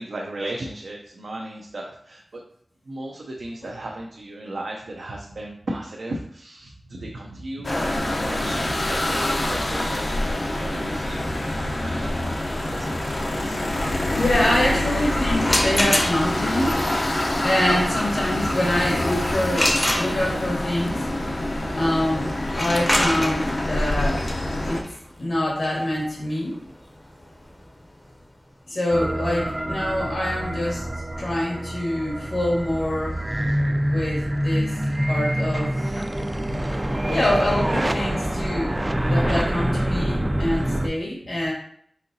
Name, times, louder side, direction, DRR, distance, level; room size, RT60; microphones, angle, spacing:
voice 1, 0.0-2.4 2.9-11.2 11.5-13.6 33.3-34.0 35.8-36.7 40.6-40.9, right 1 dB, 80° right, -1 dB, 0.5 m, -36 dB
sound 1, 7.6-24.8, left 1 dB, 60° left, 0.6 m, -26 dB
voice 2, 14.1-16.8 17.4-21.1 21.7-24.3 24.7-24.8 25.2-26.6 28.7-30.8 31.2-33.2 33.8-34.7 35.1-35.7 36.9-38.7 39.1-41.5, left 1 dB, 75° left, -4 dB, 1.7 m, -25 dB
sound 2, 15.4-16.5 19.5-20.6 22.4-28.1, left 1 dB, 20° left, 0.6 m, -26 dB
sound 3, 28.9-40.9, right 1 dB, 20° right, 0.3 m, -26 dB
4.2 x 3.7 x 2.7 m, 0.65 s
wide cardioid pair, 60°, 0 cm